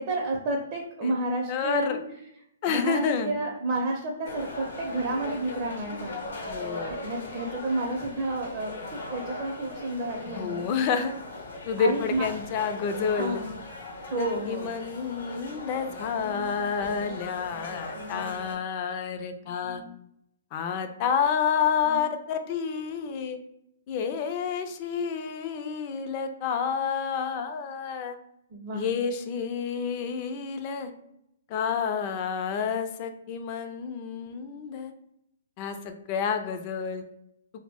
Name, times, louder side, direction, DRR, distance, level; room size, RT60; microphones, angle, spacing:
voice 1, 0.0-2.0 2.7-6.3 6.9-10.6 11.8-12.3 13.2-13.5 14.1-14.7 16.2-16.7 17.0-17.2 17.5-18.4 19.6-19.9 21.9-22.0 28.5-28.8, right 2 dB, 40° right, -1 dB, 0.5 m, -31 dB
voice 2, 1.5-2.0 2.6-3.3 6.5-6.9 10.3-11.1 11.7-13.4 14.2-19.8 20.5-23.4 23.9-28.2 28.7-30.9 31.5-34.9 35.6-37.0, left 6 dB, 35° left, 7 dB, 0.3 m, -29 dB
sound 1, 4.3-18.6, left 2 dB, 80° left, 0.7 m, -39 dB
2.5 x 2.0 x 3.4 m, 0.77 s
hypercardioid pair, 140°, 0 cm